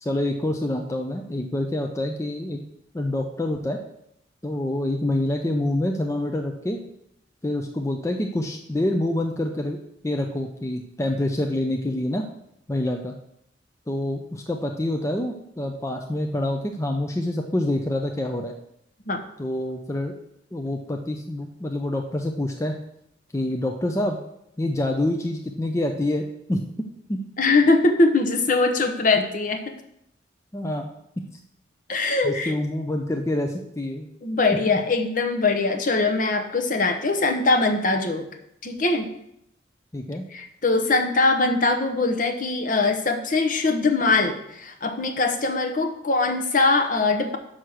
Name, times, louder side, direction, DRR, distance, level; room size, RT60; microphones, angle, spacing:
voice 1, 0.0-2.6 2.9-3.8 4.4-6.8 7.4-9.8 10.0-12.2 12.7-13.1 13.9-18.5 19.4-20.1 20.5-22.8 23.3-24.2 24.6-26.2 26.5-26.6 27.1-27.2 30.5-30.9 32.2-34.1 34.7-34.8 39.9-40.3, left 1 dB, 15° left, 3 dB, 0.5 m, -26 dB
voice 2, 27.4-29.8 31.9-32.5 34.2-38.2 38.6-39.1 40.3-47.4, left 3 dB, 45° left, 6 dB, 0.9 m, -22 dB
6.4 x 5.7 x 6.3 m, 0.77 s
head